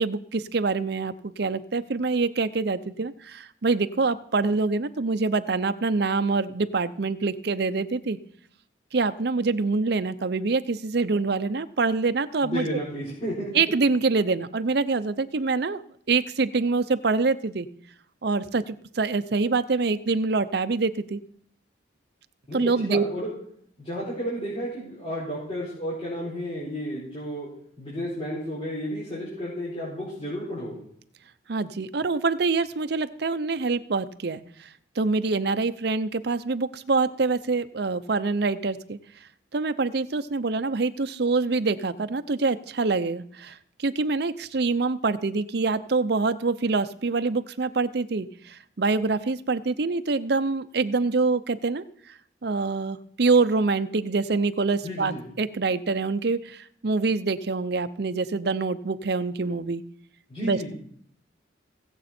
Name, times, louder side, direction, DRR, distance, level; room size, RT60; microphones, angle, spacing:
voice 1, 0.0-8.2 8.9-12.7 13.5-15.8 16.1-17.7 18.2-21.2 22.5-23.0 31.5-34.7 35.0-39.0 39.5-51.8 52.4-59.8 60.4-60.7, right 3 dB, 55° right, 11 dB, 0.6 m, -25 dB
voice 2, 12.4-13.5 22.5-23.3 23.8-27.5 27.8-30.8 54.8-55.2 60.3-60.7, equal, 30° left, -8 dB, 4.3 m, -32 dB
17.5 x 7.8 x 4.3 m, 0.64 s
head